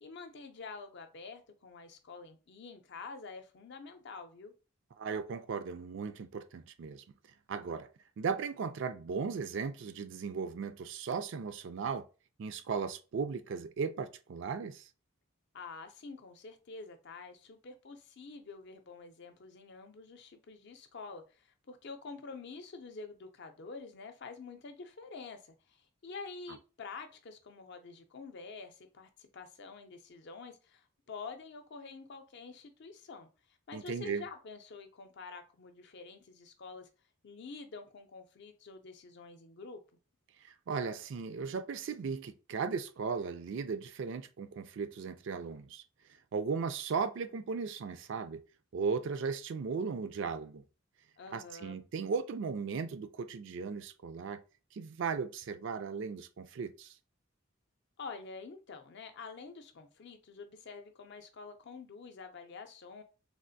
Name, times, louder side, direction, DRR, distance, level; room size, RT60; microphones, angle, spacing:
voice 1, 0.0-4.5 15.5-33.3 33.7-36.9 37.2-39.8 51.2-51.8 58.0-63.0, left 4 dB, 55° left, 0.5 m, -47 dB
voice 2, 5.0-7.0 7.5-7.9 8.2-12.0 12.4-14.9 33.7-34.2 40.4-45.8 46.3-48.4 48.7-50.6 51.3-54.4 54.7-56.9, right 5 dB, 60° right, 0.4 m, -36 dB
3.4 x 2.4 x 2.6 m
head